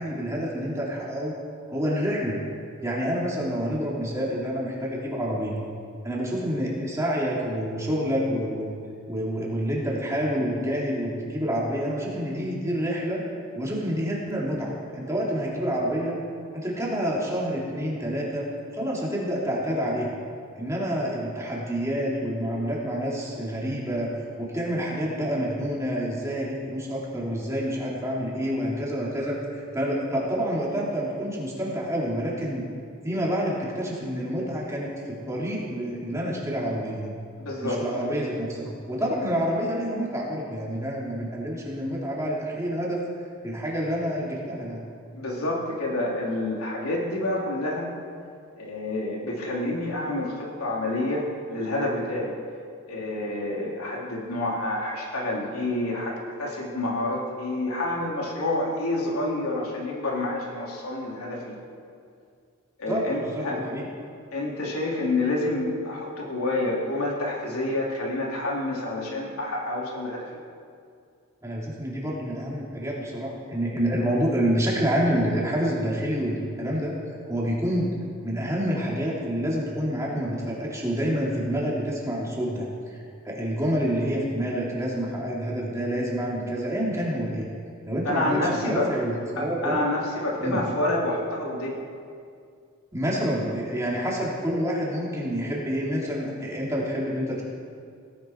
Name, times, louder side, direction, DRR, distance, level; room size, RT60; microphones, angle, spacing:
voice 1, 0.0-1.3 1.7-2.4 2.8-5.6 6.0-8.7 9.1-13.2 13.5-16.2 16.5-18.5 18.7-20.1 20.5-24.1 24.4-32.6 33.0-37.1 37.6-43.0 43.4-44.8 62.9-63.9 71.4-76.9 77.2-78.0 78.2-87.5 87.8-89.8 90.4-90.6 92.9-97.4, equal, 15° right, -5 dB, 3.1 m, -28 dB
voice 2, 37.4-37.8 45.1-47.9 48.6-52.3 52.9-61.6 62.8-63.6 64.3-70.3 88.1-89.0 89.4-91.8, left 2 dB, 90° left, -3 dB, 3.4 m, -28 dB
17.5 x 17.0 x 4.6 m, 2.3 s
head